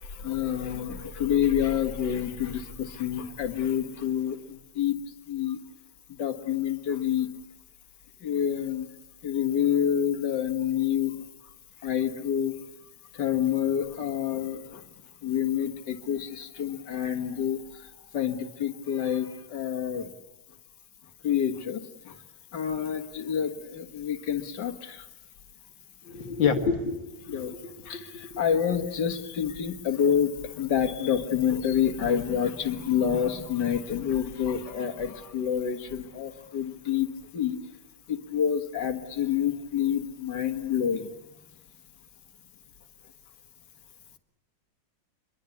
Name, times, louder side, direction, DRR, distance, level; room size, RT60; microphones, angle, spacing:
voice 1, 0.1-5.0 5.3-5.6 6.2-7.3 8.2-8.9 9.2-11.2 11.8-12.6 13.1-14.8 15.2-17.6 18.1-20.1 21.2-21.8 22.1-22.2 22.5-25.1 27.3-27.5 27.9-37.1 37.3-37.6 38.1-41.1, left 9 dB, 65° left, 5 dB, 2.3 m, -28 dB
voice 2, 26.0-28.3, left 6 dB, 80° left, 6 dB, 2.4 m, -29 dB
27.5 x 22.5 x 8.5 m, 0.99 s
omnidirectional pair, 2.0 m